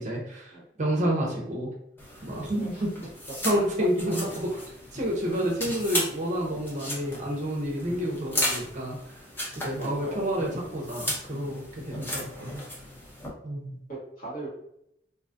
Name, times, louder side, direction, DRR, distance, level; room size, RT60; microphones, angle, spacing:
voice 1, 0.0-1.7 2.2-2.9 3.4-4.6 4.9-9.2 9.6-12.6 13.4-13.8, equal, 40° right, -1 dB, 0.6 m, -29 dB
sound 1, 2.0-13.3, left 1 dB, 10° left, 0.6 m, -35 dB
voice 2, 9.8-10.3 11.9-12.1 13.9-14.5, right 2 dB, 50° left, -7 dB, 1.3 m, -39 dB
2.5 x 2.3 x 2.5 m, 0.76 s
head